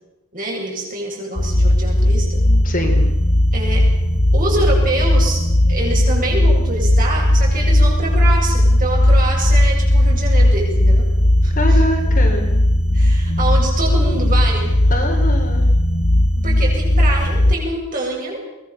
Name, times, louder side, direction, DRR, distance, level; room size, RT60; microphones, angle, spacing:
voice 1, 0.3-2.4 3.5-3.8 4.3-5.4 5.7-11.1 11.4-11.8 12.9-14.7 16.4-18.4, right 2 dB, 40° right, -2 dB, 7.9 m, -25 dB
sound 1, 1.4-17.6, left 1 dB, 65° left, 2.3 m, -16 dB
voice 2, 2.6-3.1 11.5-12.5 14.9-15.7, equal, 35° left, 1 dB, 3.9 m, -24 dB
23.0 x 19.5 x 7.2 m, 0.96 s
head